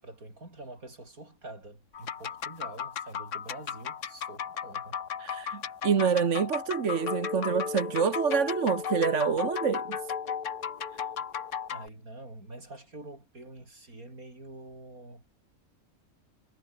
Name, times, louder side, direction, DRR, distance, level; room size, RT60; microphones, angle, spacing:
voice 1, 0.0-5.0 11.7-15.2, right 2 dB, 75° right, 7.3 m, -46 dB
sound 1, 1.9-11.9, left 8 dB, 60° left, 1.4 m, -36 dB
voice 2, 5.2-10.0, right 6 dB, 55° right, 1.6 m, -27 dB
sound 2, 6.9-11.5, left 4 dB, 30° left, 1.2 m, -38 dB
omnidirectional pair, 1.5 m